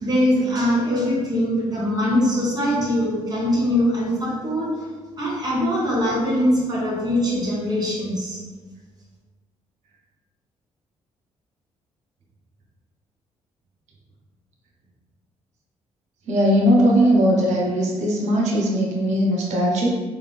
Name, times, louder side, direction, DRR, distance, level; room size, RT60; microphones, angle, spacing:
voice 1, 0.0-4.7 5.2-8.4, equal, 35° right, -5 dB, 1.3 m, -22 dB
voice 2, 16.3-19.9, equal, 80° right, -1 dB, 0.9 m, -19 dB
3.5 x 2.5 x 3.5 m, 1.4 s
cardioid pair, 80°, 12 cm